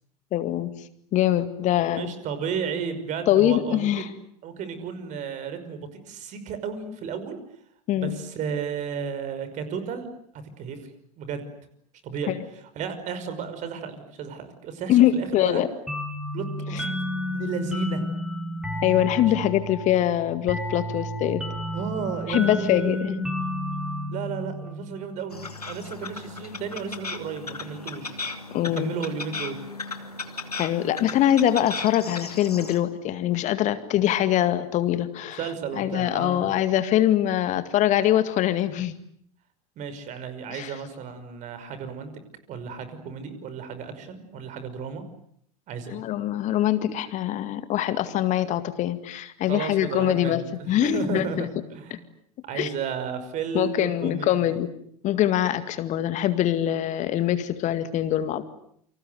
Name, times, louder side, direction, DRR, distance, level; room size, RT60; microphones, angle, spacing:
voice 1, 0.3-0.7 1.1-2.1 3.3-4.1 7.9-8.1 12.3-12.4 14.9-15.7 16.7-16.8 18.8-21.4 22.3-23.3 28.5-28.9 30.6-35.4 35.8-38.9 40.5-40.7 45.9-51.5 52.5-52.7 53.5-54.7 55.0-58.4, left 12 dB, 40° left, 11 dB, 2.0 m, -23 dB
voice 2, 2.0-4.1 4.4-7.4 7.9-10.1 10.6-10.9 11.2-11.4 12.0-15.6 16.3-16.8 17.1-18.0 21.7-23.0 24.1-25.4 25.7-28.2 28.7-29.6 35.4-36.5 39.8-42.1 42.5-45.0 45.7-46.0 49.5-52.0 52.4-54.6, right 6 dB, 40° right, 11 dB, 5.6 m, -33 dB
sound 1, 15.9-25.2, equal, 5° right, 6.7 m, -32 dB
sound 2, 25.3-32.8, left 4 dB, 85° left, 2.5 m, -36 dB
29.0 x 25.5 x 8.0 m, 0.67 s
figure-of-eight pair, 85°, 19 cm